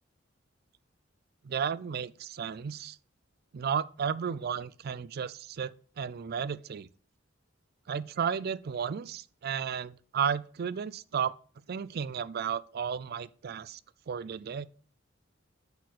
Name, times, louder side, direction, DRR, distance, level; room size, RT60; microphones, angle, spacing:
voice 1, 1.4-3.0 3.5-6.9 7.9-11.3 11.7-13.8 14.1-14.7, right 7 dB, 55° right, 0.4 m, -33 dB
8.3 x 4.3 x 6.4 m
head